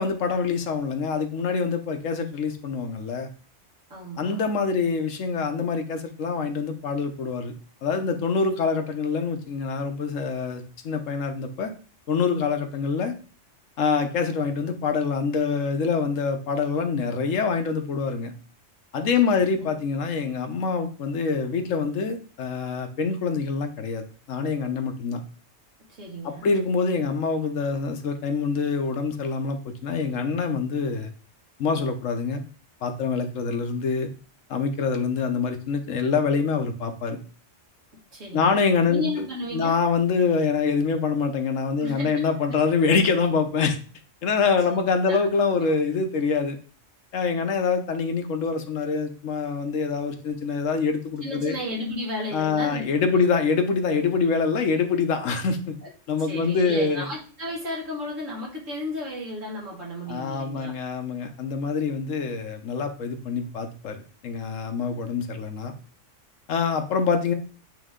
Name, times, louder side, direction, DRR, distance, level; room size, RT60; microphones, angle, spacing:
voice 1, 0.0-3.3 4.2-7.5 7.8-11.7 12.1-13.1 13.8-18.3 18.9-25.2 26.2-31.1 31.6-32.4 32.8-34.1 34.5-37.2 38.3-39.0 39.5-43.8 44.2-46.6 47.1-51.6 52.3-55.7 56.1-57.1 60.1-65.7 66.5-67.3, left 5 dB, 80° left, 6 dB, 1.2 m, -25 dB
voice 2, 3.9-4.4 19.2-19.7 25.9-26.5 38.1-38.6 38.9-39.8 41.8-42.1 44.3-45.2 51.2-53.2 55.8-55.9 56.2-60.7, left 1 dB, 80° right, -4 dB, 2.6 m, -34 dB
8.9 x 3.1 x 3.7 m, 0.39 s
omnidirectional pair, 1.3 m